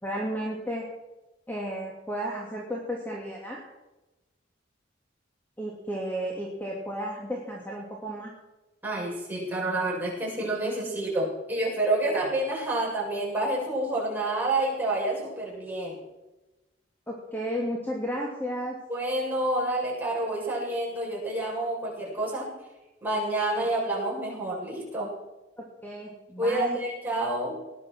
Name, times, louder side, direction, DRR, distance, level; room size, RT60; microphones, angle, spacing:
voice 1, 0.0-0.8 1.5-3.6 5.6-8.3 17.1-18.8 25.8-26.8, equal, 10° left, -2 dB, 2.6 m, -33 dB
voice 2, 8.8-16.0 18.9-22.5 23.0-25.1 26.4-27.6, right 1 dB, 10° right, -5 dB, 7.5 m, -28 dB
19.0 x 11.5 x 6.3 m, 1.0 s
head